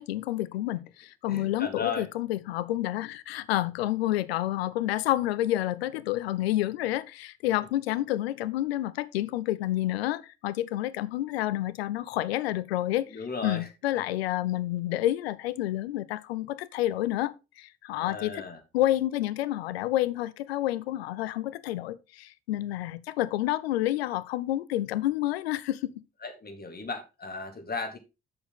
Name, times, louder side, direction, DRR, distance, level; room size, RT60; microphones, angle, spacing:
voice 1, 0.0-18.4 18.7-25.9, left 14 dB, 75° left, 0.5 m, -29 dB
voice 2, 1.3-2.1 13.1-13.7 18.0-18.6 26.2-28.0, left 4 dB, 30° left, 2.2 m, -35 dB
7.7 x 6.9 x 3.7 m
figure-of-eight pair, 45°, 31 cm